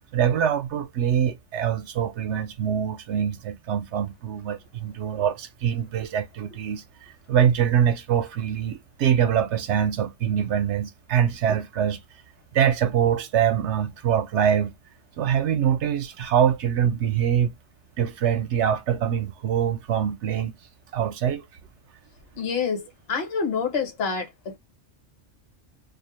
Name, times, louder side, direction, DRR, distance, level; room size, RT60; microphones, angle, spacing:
voice 1, 0.1-6.8 7.3-12.0 12.5-14.7 15.2-17.5 18.0-20.5 20.9-21.4, right 9 dB, 70° right, 0.9 m, -24 dB
voice 2, 22.4-24.6, left 5 dB, 60° left, 1.0 m, -27 dB
2.5 x 2.1 x 2.9 m
omnidirectional pair, 1.2 m